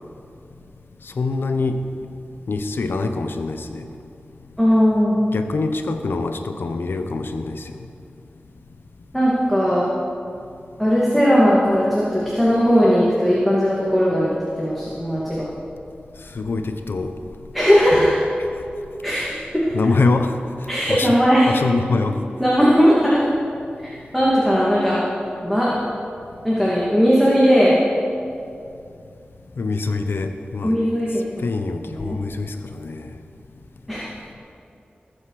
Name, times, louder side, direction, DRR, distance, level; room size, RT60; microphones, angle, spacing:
voice 1, 1.2-1.8 2.5-3.8 5.3-7.7 16.3-17.1 19.7-20.4 20.9-21.2 21.5-22.2 29.6-30.8 31.4-33.1, left 3 dB, 90° left, 7 dB, 0.9 m, -24 dB
voice 2, 4.6-5.2 9.1-9.9 10.8-14.3 14.6-15.5 17.5-18.2 19.0-19.8 20.7-21.5 22.4-23.2 23.8-25.0 25.4-25.7 26.4-27.8 30.6-31.4 32.0-32.2 33.9-34.1, equal, ahead, -7 dB, 2.5 m, -18 dB
19.5 x 8.1 x 4.9 m, 2.5 s
wide cardioid pair, 75°, 4 cm